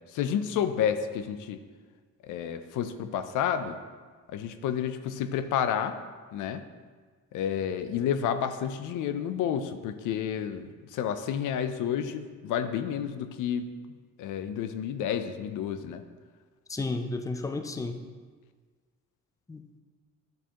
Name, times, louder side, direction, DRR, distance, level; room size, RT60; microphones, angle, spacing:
voice 1, 0.1-1.6 2.2-3.8 4.3-6.0 6.3-6.6 7.3-13.7 14.2-16.0, left 8 dB, 85° left, 9 dB, 0.6 m, -30 dB
voice 2, 16.7-18.0 19.5-19.8, left 3 dB, 10° left, 6 dB, 0.5 m, -33 dB
10.5 x 4.7 x 2.9 m, 1.5 s
cardioid pair, 90°, 30 cm